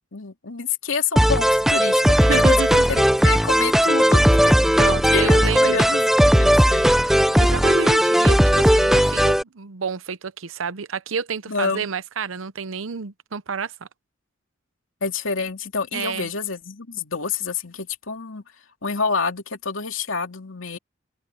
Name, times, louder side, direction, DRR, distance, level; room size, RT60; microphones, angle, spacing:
voice 1, 0.1-2.6 2.9-4.4 4.8-7.1 11.5-11.9 15.0-18.4 18.8-20.8, left 5 dB, 85° left, 2.6 m, -28 dB
sound 1, 1.2-9.4, equal, ahead, 0.5 m, -17 dB
voice 2, 2.2-2.9 4.7-5.8 7.4-13.7 15.9-16.3, right 6 dB, 85° right, 0.7 m, -29 dB
open air
head